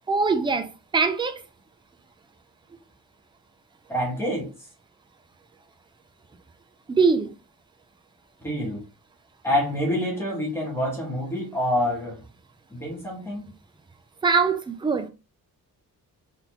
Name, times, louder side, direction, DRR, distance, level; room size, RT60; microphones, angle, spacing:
voice 1, 0.1-1.4 6.9-7.3 14.2-15.1, right 4 dB, 15° right, 0.3 m, -22 dB
voice 2, 3.9-4.5 8.4-8.8 9.4-12.2 12.7-13.5, equal, 5° left, 1.5 m, -27 dB
4.0 x 3.7 x 2.9 m
wide cardioid pair, 175°, 37 cm